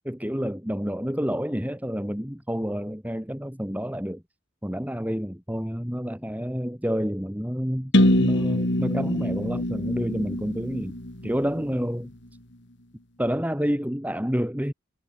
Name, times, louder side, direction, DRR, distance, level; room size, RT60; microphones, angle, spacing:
voice 1, 0.0-4.2 4.6-7.9 8.2-11.0 11.2-12.1 13.2-14.7, equal, 10° right, 4.3 m, -29 dB
sound 1, 7.9-11.8, left 1 dB, 65° left, 3.8 m, -24 dB
head